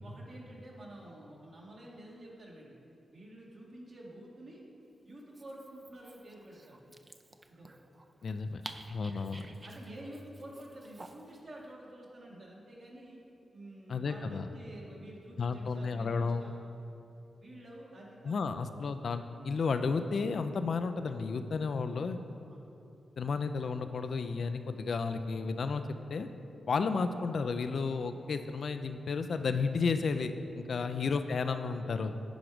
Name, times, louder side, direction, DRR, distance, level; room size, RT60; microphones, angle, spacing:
voice 1, 0.0-2.8 3.1-4.6 5.0-7.0 7.5-7.7 8.5-8.6 9.6-13.2 13.5-16.6 17.4-18.5 22.5-22.6 30.8-30.9, right 1 dB, 65° right, -5 dB, 2.1 m, -49 dB
Dog, 5.2-11.4, right 2 dB, 40° right, 0.6 m, -52 dB
voice 2, 8.2-8.6 8.9-9.4 13.9-14.5 15.4-16.5 18.2-22.2 23.2-25.8 26.1-26.3 26.7-32.1, left 4 dB, 65° left, 8 dB, 0.4 m, -32 dB
10.0 x 4.8 x 5.0 m, 2.8 s
supercardioid pair, 40°, 0 cm